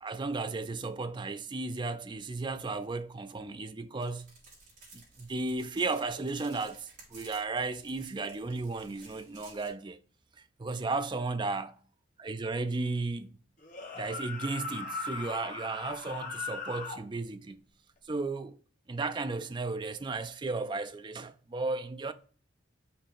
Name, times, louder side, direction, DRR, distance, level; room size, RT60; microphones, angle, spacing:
voice 1, 0.0-4.3 4.9-10.0 10.6-11.7 12.2-13.4 14.0-17.6 18.1-18.6 18.9-22.1, right 3 dB, 25° right, 0.4 m, -34 dB
sound 1, 4.0-9.7, right 3 dB, 45° right, 3.5 m, -55 dB
sound 2, 13.6-17.0, left 4 dB, 40° left, 1.2 m, -39 dB
5.8 x 4.0 x 5.1 m
head